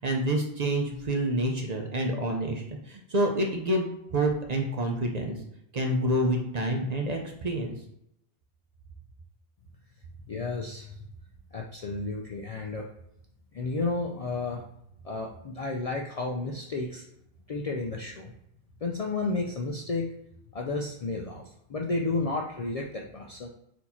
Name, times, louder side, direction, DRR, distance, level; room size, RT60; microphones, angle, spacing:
voice 1, 0.0-5.4 5.7-7.7, right 1 dB, 45° right, 2 dB, 0.6 m, -28 dB
voice 2, 10.3-11.1 11.5-12.9 13.5-14.6 15.0-17.0 17.5-18.3 18.8-20.1 20.5-23.5, left 3 dB, 55° left, 0 dB, 0.4 m, -32 dB
4.3 x 2.7 x 4.2 m, 0.79 s
omnidirectional pair, 1.1 m